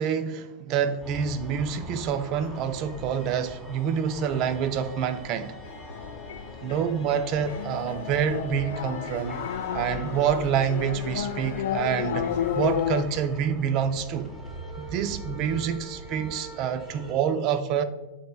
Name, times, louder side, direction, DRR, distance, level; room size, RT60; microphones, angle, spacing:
voice 1, 0.0-5.6 6.6-9.4 9.7-14.3 14.8-17.8, right 7 dB, 40° right, 0.5 m, -27 dB
sound 1, 1.0-17.1, right 1 dB, 10° right, 1.2 m, -41 dB
sound 2, 5.6-13.0, left 9 dB, 60° left, 0.3 m, -32 dB
10.0 x 4.2 x 2.2 m
figure-of-eight pair, 90°, 0 cm